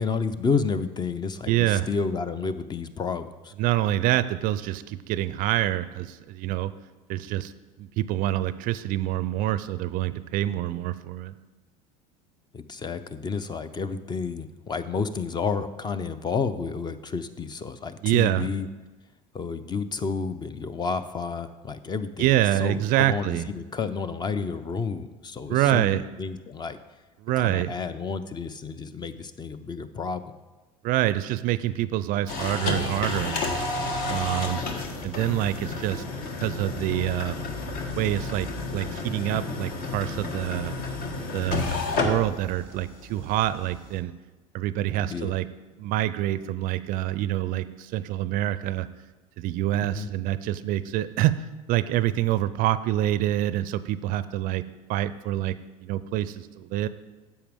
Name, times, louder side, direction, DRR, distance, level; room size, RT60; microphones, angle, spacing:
voice 1, 0.0-3.5 12.5-18.7 19.3-22.3 22.6-26.8 27.4-30.2 45.0-45.3 49.8-50.1, left 5 dB, 25° left, 12 dB, 0.5 m, -30 dB
voice 2, 1.5-1.9 3.6-6.7 7.1-7.5 7.8-11.3 18.0-18.5 22.2-23.4 25.5-26.1 27.2-27.7 30.8-33.4 34.1-34.6 35.0-36.0 36.4-37.4 38.0-40.7 41.3-44.1 44.5-45.5 45.8-48.9 49.4-51.3 51.7-54.6 54.9-55.5 55.8-56.9, right 14 dB, 50° right, 15 dB, 0.4 m, -26 dB
sound 1, 32.3-44.0, left 3 dB, 55° left, 1.3 m, -31 dB
10.0 x 7.1 x 3.5 m, 1.2 s
hypercardioid pair, 75°, 18 cm